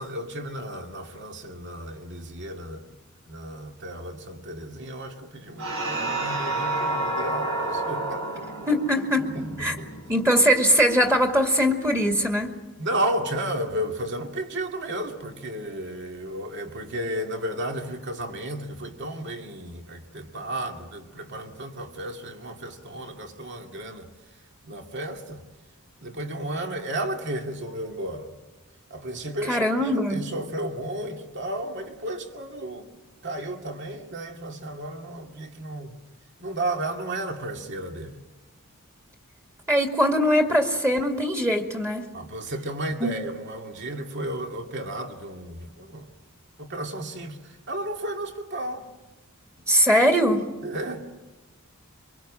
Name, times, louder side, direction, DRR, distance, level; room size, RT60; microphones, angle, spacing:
voice 1, 0.0-2.9 3.3-8.5 9.3-9.4 9.8-9.9 12.8-24.1 24.6-25.4 26.0-28.3 28.9-32.9 33.2-36.0 36.4-38.2 42.1-46.1 46.6-48.8 50.6-51.0, right 1 dB, 55° right, 2.3 m, -33 dB
sound 1, 5.6-10.4, right 2 dB, 90° right, 6.1 m, -30 dB
voice 2, 8.7-9.3 9.6-9.8 10.1-12.5 29.5-30.3 39.7-42.1 43.0-43.1 49.7-50.4, equal, 15° right, 2.2 m, -21 dB
25.0 x 23.5 x 7.6 m
head